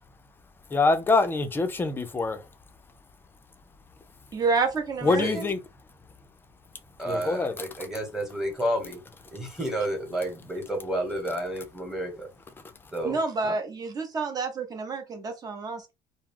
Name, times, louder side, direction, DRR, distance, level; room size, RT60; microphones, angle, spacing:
voice 1, 0.7-2.4 5.0-5.6 7.1-7.7, left 3 dB, 15° left, 0.5 m, -24 dB
voice 2, 4.3-5.5 13.0-15.9, right 4 dB, 30° right, 0.8 m, -29 dB
voice 3, 5.0-5.4 7.0-9.0 9.3-12.3 12.9-13.5, right 1 dB, 5° right, 1.1 m, -31 dB
2.2 x 2.0 x 3.5 m
cardioid pair, 110°, 12 cm